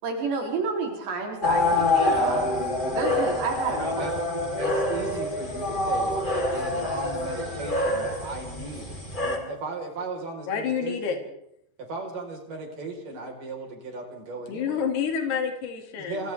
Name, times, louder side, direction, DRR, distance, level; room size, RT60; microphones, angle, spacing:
voice 1, 0.0-2.5 2.9-4.1, right 4 dB, 70° right, 0 dB, 5.8 m, -30 dB
sound 1, 1.4-9.4, left 2 dB, 10° left, 3.6 m, -26 dB
voice 2, 3.7-4.1 4.6-8.9 9.5-11.2 11.9-14.9 15.9-16.3, right 3 dB, 50° right, 2 dB, 6.2 m, -36 dB
voice 3, 10.5-11.2 14.5-16.3, left 7 dB, 65° left, 3 dB, 4.6 m, -28 dB
29.5 x 28.0 x 3.6 m, 0.76 s
omnidirectional pair, 5.1 m